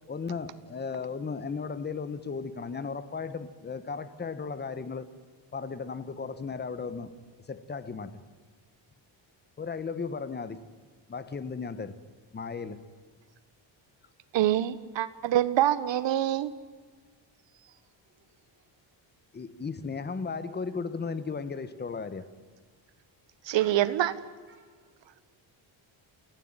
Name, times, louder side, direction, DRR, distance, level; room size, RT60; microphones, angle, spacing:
voice 1, 0.1-5.1 5.5-7.1 7.5-8.1 9.6-10.6 11.1-12.0 12.3-12.8 19.3-22.2, left 5 dB, 20° left, 13 dB, 1.3 m, -35 dB
voice 2, 14.3-16.5 23.5-24.1, right 12 dB, 65° right, 15 dB, 1.5 m, -25 dB
voice 3, 18.0-18.7 22.4-22.5 23.6-23.8 24.5-24.6 25.2-25.3, right 4 dB, 25° right, -1 dB, 5.4 m, -57 dB
29.0 x 16.0 x 9.1 m, 1.5 s
cardioid pair, 140°, 47 cm